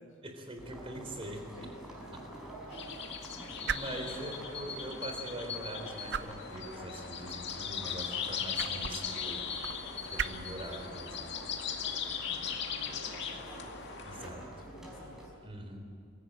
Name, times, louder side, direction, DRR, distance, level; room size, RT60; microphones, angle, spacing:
voice 1, 0.2-1.4 2.7-3.0 3.7-9.6 10.1-11.3 14.0-14.4 15.4-15.8, right 1 dB, 25° right, 4 dB, 3.9 m, -43 dB
sound 1, 0.6-15.3, right 1 dB, ahead, 5.0 m, -48 dB
sound 2, 0.6-14.2, right 8 dB, 55° right, 0.6 m, -44 dB
voice 2, 1.6-2.4 12.2-13.7 14.1-15.4, left 1 dB, 70° left, -2 dB, 2.5 m, -54 dB
sound 3, 2.7-14.3, left 7 dB, 55° left, 2.2 m, -39 dB
25.0 x 16.0 x 8.9 m, 2.5 s
head